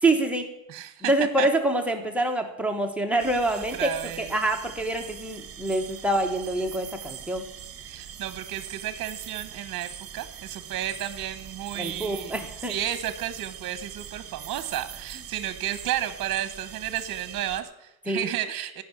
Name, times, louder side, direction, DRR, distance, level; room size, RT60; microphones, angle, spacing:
voice 1, 0.0-0.5 1.0-7.5 11.7-12.7 18.1-18.3, right 2 dB, 5° right, 1 dB, 1.3 m, -26 dB
voice 2, 0.7-1.1 1.4-1.5 3.8-4.3 7.9-12.3 12.7-18.8, right 11 dB, 60° right, 12 dB, 1.0 m, -32 dB
sound 1, 3.2-17.6, right 9 dB, 40° right, 1.4 m, -42 dB
15.5 x 6.1 x 9.9 m, 0.87 s
cardioid pair, 160°, 36 cm